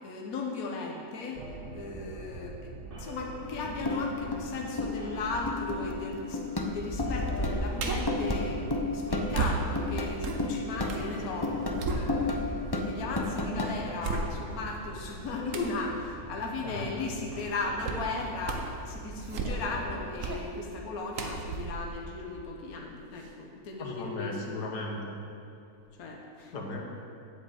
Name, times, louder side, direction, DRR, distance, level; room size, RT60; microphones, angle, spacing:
voice 1, 0.0-1.4 1.7-2.6 2.8-12.5 12.7-24.8 26.0-26.5, left 3 dB, 65° left, 0 dB, 1.5 m, -37 dB
sound 1, 1.3-6.7 7.0-20.1, right 2 dB, 40° right, 1.1 m, -44 dB
sound 2, 3.4-13.7, left 2 dB, 25° left, 0.6 m, -33 dB
sound 3, 7.8-8.2 9.3-11.1 11.5-12.6 13.1-13.2 14.0-14.7 15.5-15.8 17.8-18.1 18.4-18.8 19.2-19.8 20.2-20.5 21.1-22.8 23.2-23.3, right 3 dB, 55° right, 1.3 m, -34 dB
voice 2, 23.8-25.2 26.5-26.9, left 2 dB, 85° left, 0 dB, 1.9 m, -36 dB
8.7 x 7.9 x 7.9 m, 2.6 s
omnidirectional pair, 1.7 m